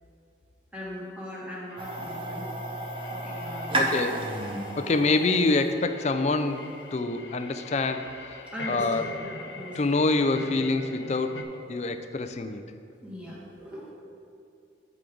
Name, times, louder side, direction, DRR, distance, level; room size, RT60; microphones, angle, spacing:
voice 1, 0.7-2.5 3.1-3.9 8.5-10.0 13.0-13.9, equal, 5° right, -7 dB, 1.9 m, -39 dB
sound 1, 1.7-11.4, left 3 dB, 85° left, 0.8 m, -44 dB
sound 2, 1.8-6.8, right 1 dB, 30° right, 0.8 m, -33 dB
voice 2, 3.7-4.4 4.8-6.6 6.9-9.0 9.7-12.6, left 3 dB, 40° left, 9 dB, 0.4 m, -26 dB
13.5 x 5.1 x 3.8 m, 2.6 s
head